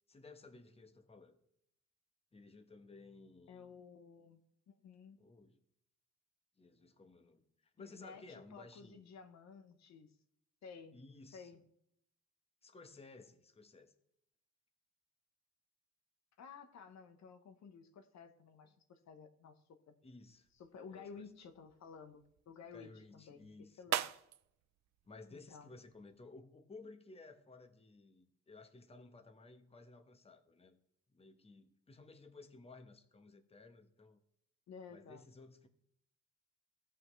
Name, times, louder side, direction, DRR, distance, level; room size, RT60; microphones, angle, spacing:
voice 1, 0.1-1.4 2.3-3.7 5.2-5.6 6.6-9.0 10.9-11.5 12.6-13.9 20.0-20.5 20.9-21.3 22.7-23.8 25.1-30.8 31.1-34.2 34.9-35.7, left 3 dB, 20° left, 7 dB, 1.1 m, -57 dB
voice 2, 3.5-4.4 4.7-5.2 7.8-10.1 10.6-11.0 11.3-11.6 16.4-20.0 20.5-24.0 25.3-25.7 34.7-35.2, left 5 dB, 65° left, 7 dB, 1.0 m, -54 dB
sound 1, 20.3-26.2, right 12 dB, 65° right, 0.5 m, -45 dB
16.0 x 5.7 x 3.2 m, 0.75 s
cardioid pair, 90°, 30 cm